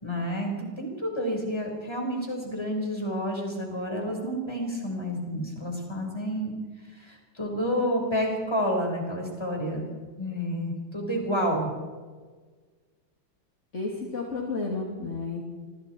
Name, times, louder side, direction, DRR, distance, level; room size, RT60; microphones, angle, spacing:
voice 1, 0.0-6.5 7.0-9.9 10.2-11.7, equal, 10° left, 1 dB, 5.5 m, -29 dB
voice 2, 13.7-15.4, left 3 dB, 35° left, -1 dB, 3.2 m, -32 dB
26.5 x 25.0 x 4.7 m, 1.5 s
omnidirectional pair, 2.3 m